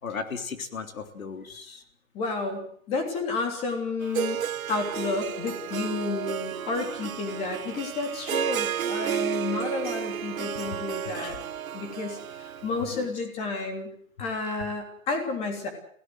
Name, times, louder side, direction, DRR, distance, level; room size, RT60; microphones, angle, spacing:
voice 1, 0.0-1.8 9.0-9.1 10.3-10.4 11.2-11.4 12.9-13.1, left 5 dB, 80° left, 7 dB, 3.5 m, -37 dB
voice 2, 2.1-4.4 4.7-11.4 11.7-13.9 14.2-15.7, left 3 dB, 15° left, 4 dB, 3.3 m, -31 dB
Harp, 4.0-13.0, right 9 dB, 85° right, 0.8 m, -32 dB
23.5 x 16.5 x 7.9 m, 0.66 s
hypercardioid pair, 165°, 40 cm